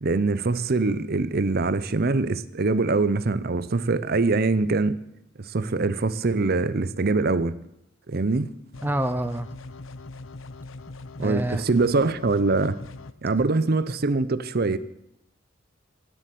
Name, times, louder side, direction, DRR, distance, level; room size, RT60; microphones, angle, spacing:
voice 1, 0.0-5.0 5.4-7.6 8.1-8.5 11.2-12.8 13.2-14.8, right 3 dB, 50° right, 0.7 m, -23 dB
sound 1, 8.7-13.1, left 3 dB, 75° left, 0.8 m, -41 dB
voice 2, 8.8-9.5 11.2-11.7, right 1 dB, 10° right, 0.5 m, -27 dB
16.5 x 7.7 x 7.6 m
head